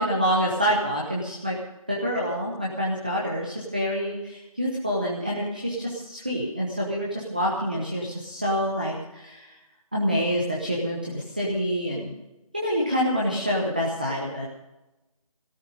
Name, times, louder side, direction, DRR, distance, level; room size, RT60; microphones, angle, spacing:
voice 1, 0.0-1.6 1.9-9.5 9.9-12.1 12.5-14.5, equal, 15° right, -4 dB, 0.9 m, -27 dB
17.0 x 13.0 x 5.3 m, 0.99 s
figure-of-eight pair, 180°, 19 cm